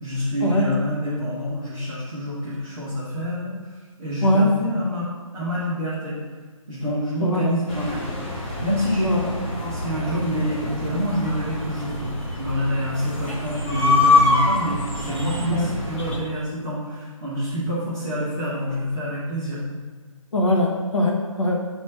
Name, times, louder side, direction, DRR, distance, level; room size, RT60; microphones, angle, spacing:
voice 1, 0.0-3.5 4.0-6.2 6.7-8.0 8.6-9.2 9.6-19.6, equal, 5° right, -15 dB, 0.3 m, -27 dB
voice 2, 4.2-4.5 7.2-7.5 9.0-9.2 15.5-15.7 20.3-21.6, left 1 dB, 60° left, 0 dB, 1.3 m, -21 dB
sound 1, 7.7-16.2, left 2 dB, 20° left, 0.9 m, -25 dB
6.4 x 3.2 x 5.6 m, 1.5 s
hypercardioid pair, 165°, 18 cm